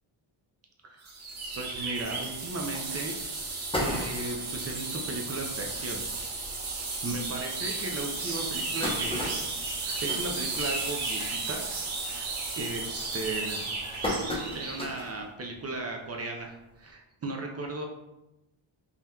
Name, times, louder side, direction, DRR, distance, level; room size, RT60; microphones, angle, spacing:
sound 1, 1.0-14.9, right 3 dB, 75° right, 0.9 m, -34 dB
voice 1, 1.5-3.2 3.8-6.0 7.0-9.4 9.8-11.6 12.0-13.6 14.5-17.9, right 2 dB, 30° right, 1 dB, 0.4 m, -36 dB
sound 2, 3.5-4.6 5.1-5.2 5.5-5.6 5.9-6.1 6.8-6.9 7.4-7.5 8.3-11.1 11.5-11.8 12.1-12.5 13.2-15.2 15.6-15.7 16.9-17.0, left 1 dB, 10° left, 0.7 m, -34 dB
3.5 x 2.7 x 2.2 m, 0.93 s
cardioid pair, 95°, 49 cm